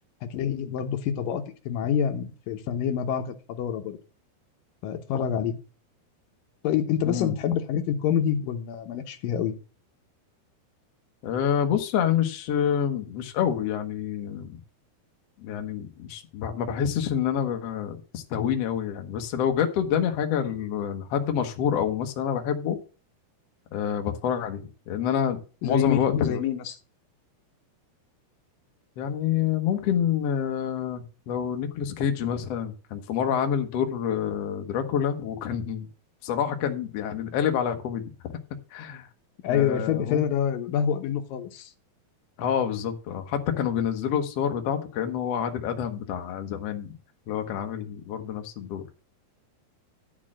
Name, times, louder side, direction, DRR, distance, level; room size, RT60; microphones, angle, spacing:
voice 1, 0.2-4.0 4.8-5.6 6.6-9.5 25.6-26.8 39.4-41.7, left 8 dB, 70° left, 7 dB, 2.3 m, -27 dB
voice 2, 11.2-14.6 15.4-22.8 23.7-26.4 29.0-35.9 36.2-38.1 38.7-39.1 39.5-40.2 42.4-47.0 47.3-48.8, left 8 dB, 85° left, 5 dB, 1.3 m, -27 dB
11.5 x 4.3 x 7.3 m, 0.35 s
omnidirectional pair, 4.7 m